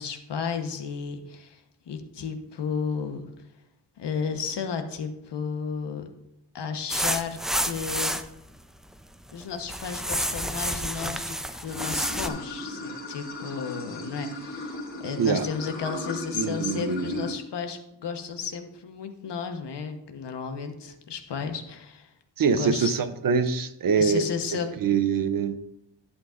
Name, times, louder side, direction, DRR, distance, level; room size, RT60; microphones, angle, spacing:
voice 1, 0.0-3.2 4.0-6.1 6.5-8.1 9.3-22.1 22.5-23.0 24.0-24.7, left 6 dB, 75° left, 1.1 m, -33 dB
sound 1, 6.9-8.3 8.9-9.4 9.7-12.3, equal, ahead, 0.4 m, -29 dB
Water / Sink (filling or washing), 11.6-17.3, left 1 dB, 30° left, 2.4 m, -36 dB
voice 2, 16.3-17.3 22.4-24.3 24.8-25.6, right 6 dB, 50° right, 0.7 m, -24 dB
11.0 x 8.1 x 2.5 m
wide cardioid pair, 105°, 42 cm